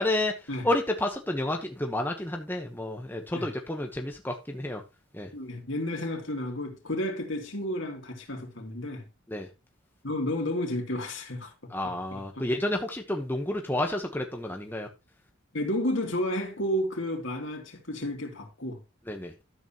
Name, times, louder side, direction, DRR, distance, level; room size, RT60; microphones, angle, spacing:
voice 1, 0.0-4.8 5.1-5.3 9.3-9.5 11.7-14.9 19.1-19.3, left 1 dB, 10° left, 1.1 m, -30 dB
voice 2, 5.3-9.1 10.0-11.7 12.1-12.5 15.5-18.8, left 1 dB, 60° left, 3.1 m, -32 dB
12.5 x 8.2 x 3.0 m
head